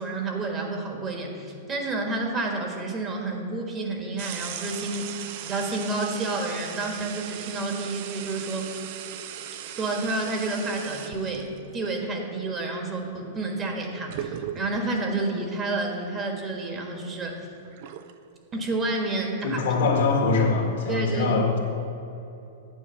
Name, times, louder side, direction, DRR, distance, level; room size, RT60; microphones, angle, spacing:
voice 1, 0.0-8.7 9.8-17.5 18.5-19.6 20.9-21.3, right 2 dB, 25° right, 2 dB, 1.6 m, -30 dB
sound 1, 4.2-11.6 13.6-13.7 14.1-15.0 15.6-15.7 16.1-18.1, right 10 dB, 55° right, 0.6 m, -38 dB
voice 2, 19.4-21.6, left 4 dB, 70° left, 0 dB, 1.8 m, -23 dB
9.7 x 4.6 x 7.1 m, 2.9 s
hypercardioid pair, 115°, 0 cm